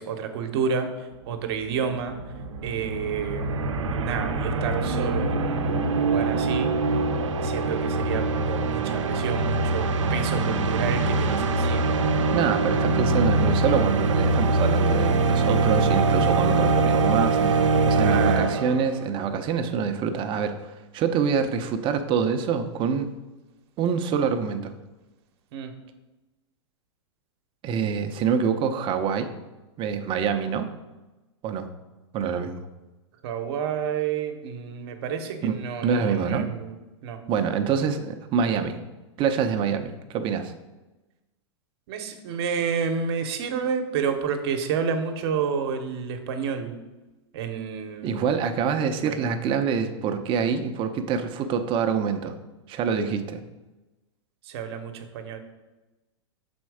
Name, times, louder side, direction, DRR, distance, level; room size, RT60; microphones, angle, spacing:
voice 1, 0.0-2.1 2.6-3.7 4.0-6.7 7.4-11.9 18.0-18.6 25.5-25.7 33.2-36.7 37.0-37.2 41.9-46.7 47.3-48.2 49.0-49.2 54.5-55.4, right 6 dB, 60° right, 6 dB, 1.0 m, -30 dB
sound 1, 1.2-1.3 1.5-19.0, right 3 dB, 90° right, 0.7 m, -23 dB
voice 2, 12.3-23.2 23.8-24.7 27.6-29.3 29.8-30.7 31.4-31.7 32.1-32.5 35.4-36.5 37.3-38.8 39.2-40.5 48.0-52.3 52.7-53.4, right 6 dB, 35° right, 7 dB, 0.6 m, -26 dB
6.1 x 4.3 x 4.8 m, 1.1 s
hypercardioid pair, 120°, 15 cm